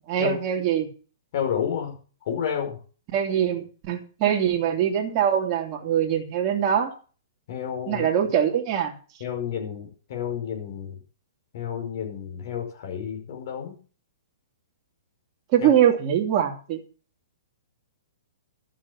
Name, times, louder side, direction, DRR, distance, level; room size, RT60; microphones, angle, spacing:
voice 1, 0.1-0.9 3.1-6.9 7.9-8.9 15.5-16.8, right 9 dB, 30° right, 1 dB, 2.8 m, -23 dB
voice 2, 1.3-2.0 2.3-2.8 7.5-8.1 9.2-11.0 11.5-13.8 15.6-15.7, left 8 dB, 50° left, 2 dB, 5.2 m, -30 dB
13.0 x 7.6 x 7.2 m, 0.39 s
hypercardioid pair, 155°, 2 cm